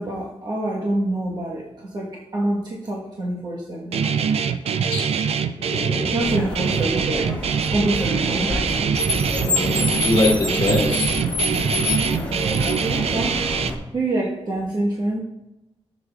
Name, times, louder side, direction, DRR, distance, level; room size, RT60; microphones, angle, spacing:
voice 1, 0.0-4.0 6.1-7.4 7.7-8.5 12.0-12.3 12.8-13.6 13.9-15.2, right 1 dB, 40° right, -4 dB, 1.2 m, -26 dB
Guitar, 3.9-13.7, right 6 dB, 70° right, 0.4 m, -23 dB
voice 2, 5.6-6.6 9.4-11.1, left 2 dB, 25° left, -3 dB, 1.9 m, -24 dB
Car, 6.2-13.7, left 2 dB, 10° left, 1.1 m, -27 dB
14.5 x 7.3 x 2.3 m, 0.94 s
wide cardioid pair, 160°, 11 cm